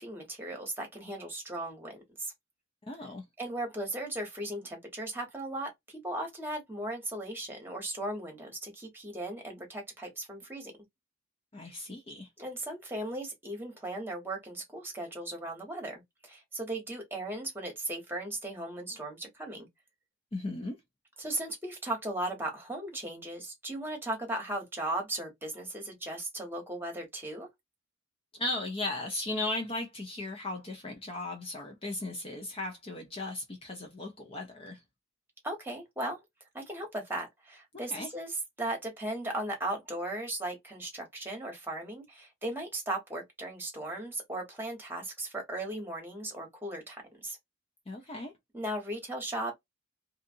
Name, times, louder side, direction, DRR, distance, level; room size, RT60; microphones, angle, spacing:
voice 1, 0.0-2.3 3.4-10.7 12.4-19.7 21.2-27.5 35.4-36.2 36.5-47.4 48.5-49.6, right 1 dB, 10° right, 1.2 m, -37 dB
voice 2, 2.8-3.2 11.5-12.3 20.3-20.8 28.3-34.8 37.7-38.1 47.9-48.3, left 2 dB, 30° left, 0.6 m, -36 dB
2.7 x 2.5 x 2.5 m
head